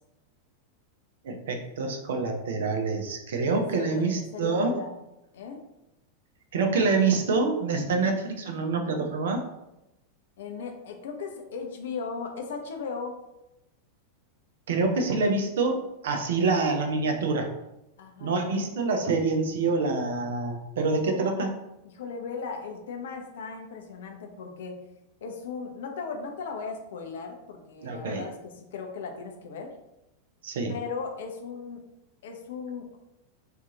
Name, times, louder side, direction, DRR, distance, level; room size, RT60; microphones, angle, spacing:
voice 1, 1.2-4.7 6.5-9.4 14.7-17.5 18.2-21.5 27.8-28.3 30.4-30.7, right 3 dB, 60° right, 4 dB, 0.5 m, -26 dB
voice 2, 3.4-5.0 5.3-5.7 10.4-13.2 18.0-18.5 21.9-24.9 25.2-29.8 30.7-31.8 32.2-33.0, left 5 dB, 60° left, 3 dB, 0.5 m, -37 dB
2.8 x 2.4 x 3.7 m, 0.90 s
figure-of-eight pair, 90°, 0 cm